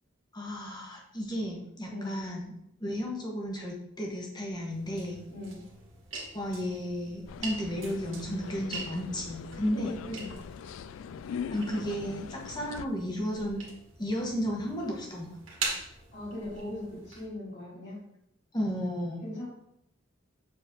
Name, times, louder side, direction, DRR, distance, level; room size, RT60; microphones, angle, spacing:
voice 1, 0.3-2.5 2.8-5.2 6.3-10.0 11.5-13.6 14.0-15.4 18.5-19.2, equal, 20° left, -1 dB, 1.3 m, -33 dB
voice 2, 1.9-2.2 5.3-5.6 9.7-10.4 16.1-18.0 19.2-19.4, left 1 dB, 55° left, -11 dB, 2.5 m, -39 dB
sound 1, 4.7-17.3, right 3 dB, 75° right, 1.9 m, -43 dB
sound 2, 7.3-12.9, left 7 dB, 80° left, 0.3 m, -41 dB
7.1 x 4.4 x 3.8 m, 0.80 s
head